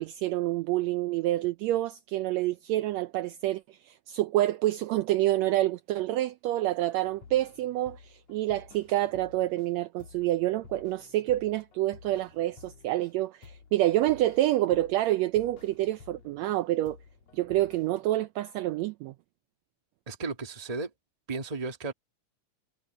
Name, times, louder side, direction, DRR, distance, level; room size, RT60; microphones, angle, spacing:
voice 1, 0.0-17.0 17.3-19.1, right 15 dB, 80° right, 1.6 m, -28 dB
sound 1, 7.0-9.7 10.0-13.2 13.4-16.6 16.9-18.1, left 5 dB, 60° left, 3.1 m, -53 dB
voice 2, 20.1-20.9 21.3-21.9, right 3 dB, 15° right, 1.3 m, -34 dB
omnidirectional pair, 3.5 m